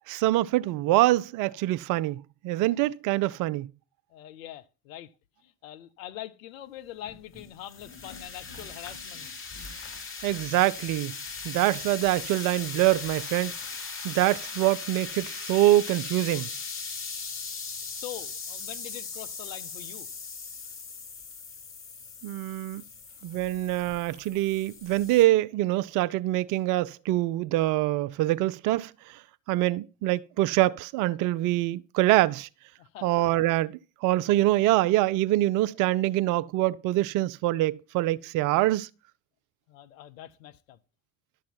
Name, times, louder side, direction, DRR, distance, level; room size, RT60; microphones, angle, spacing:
voice 1, 0.1-3.7 10.2-11.1 11.4-13.5 14.0-16.5 22.2-22.8 23.2-28.9 29.5-32.5 33.0-38.9, right 16 dB, 50° right, 0.5 m, -25 dB
voice 2, 4.1-5.1 5.4-9.3 17.9-20.1 32.8-33.1 39.7-40.8, left 13 dB, 70° left, 0.8 m, -43 dB
sound 1, 7.0-25.2, left 5 dB, 30° left, 3.4 m, -39 dB
11.5 x 7.4 x 4.4 m
figure-of-eight pair, 55°, 41 cm